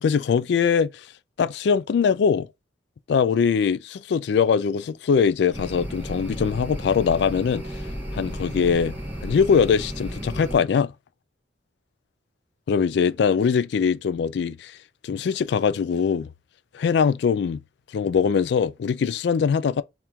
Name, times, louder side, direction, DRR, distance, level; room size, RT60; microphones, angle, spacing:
voice 1, 0.0-1.0 1.4-2.5 3.1-7.6 8.1-8.9 9.2-10.9 12.7-14.7 15.0-16.3 16.7-17.6 17.9-19.8, left 6 dB, 65° left, 0.3 m, -22 dB
sound 1, 5.5-10.6, equal, 10° right, 1.3 m, -33 dB
4.4 x 2.5 x 3.5 m
head